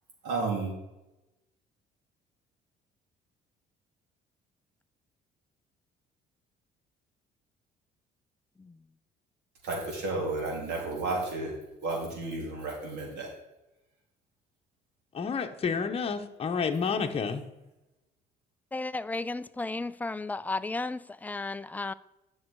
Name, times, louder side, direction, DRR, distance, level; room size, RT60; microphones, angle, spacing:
voice 1, 0.2-0.7 9.6-11.5 11.8-13.3, right 3 dB, 80° right, 3.5 m, -32 dB
voice 2, 15.1-17.4, left 5 dB, 35° left, 1.0 m, -30 dB
voice 3, 18.7-21.9, left 3 dB, 10° left, 0.3 m, -34 dB
10.5 x 6.4 x 4.8 m
cardioid pair, 110°, 17 cm